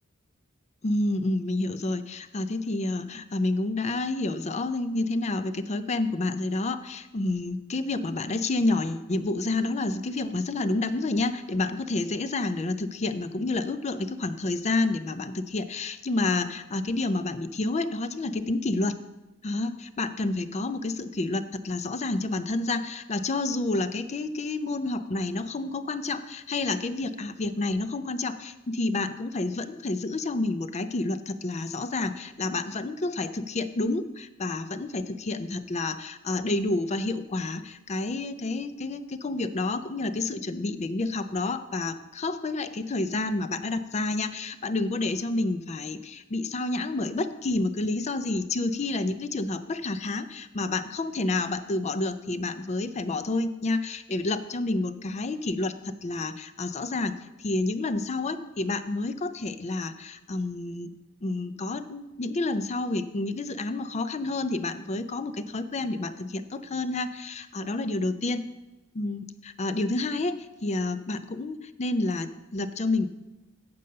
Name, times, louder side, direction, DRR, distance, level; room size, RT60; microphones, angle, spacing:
voice 1, 0.8-19.0 19.4-57.1 57.4-60.9 61.2-68.4 68.9-70.4 70.6-73.1, left 2 dB, 35° left, 12 dB, 0.5 m, -29 dB
8.3 x 5.4 x 6.5 m, 1.0 s
head